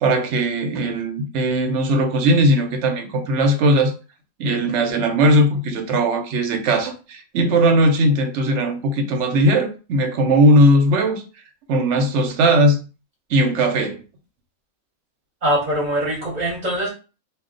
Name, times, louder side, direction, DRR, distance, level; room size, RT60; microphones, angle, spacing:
voice 1, 0.0-3.9 4.4-11.2 11.7-12.9 13.3-14.0, right 1 dB, 65° right, 0.9 m, -18 dB
voice 2, 15.4-16.9, right 1 dB, 35° right, 0.9 m, -22 dB
2.3 x 2.2 x 3.7 m
omnidirectional pair, 1.5 m